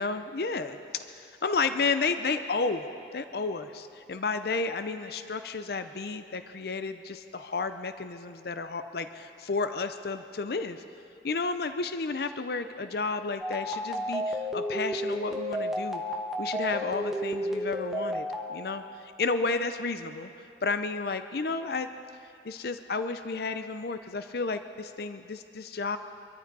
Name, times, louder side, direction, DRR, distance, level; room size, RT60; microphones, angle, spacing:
voice 1, 0.0-2.8 3.1-10.8 11.2-16.0 16.4-18.2 18.5-20.3 20.6-21.9 22.4-26.0, left 4 dB, 55° left, 10 dB, 0.5 m, -32 dB
sound 1, 13.4-18.4, equal, ahead, 1.1 m, -31 dB
24.5 x 14.0 x 4.1 m, 2.6 s
head